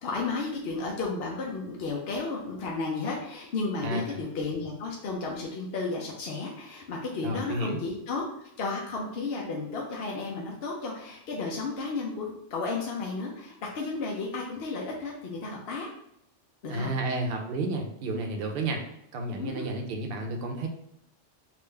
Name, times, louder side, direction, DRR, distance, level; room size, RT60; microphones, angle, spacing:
voice 1, 0.0-15.9 16.6-16.9 19.4-19.7, left 3 dB, 60° left, -1 dB, 0.8 m, -33 dB
voice 2, 3.8-4.2 7.2-7.8 16.7-18.8 19.1-20.7, right 2 dB, 60° right, 2 dB, 0.8 m, -31 dB
3.6 x 2.5 x 3.3 m, 0.78 s
omnidirectional pair, 1.2 m